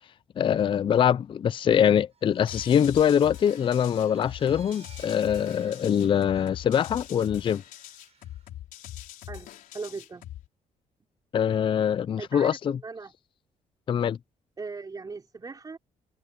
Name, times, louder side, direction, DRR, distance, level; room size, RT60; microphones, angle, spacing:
voice 1, 0.4-7.6 11.3-12.8 13.9-14.2, left 8 dB, 40° left, 0.4 m, -23 dB
Vehicle, 2.1-8.5, right 7 dB, 50° right, 7.3 m, -56 dB
sound 1, 2.5-10.5, left 13 dB, 85° left, 4.2 m, -43 dB
voice 2, 9.3-10.3 12.2-13.1 14.6-15.8, right 4 dB, 30° right, 4.3 m, -39 dB
cardioid pair, 105°, 14 cm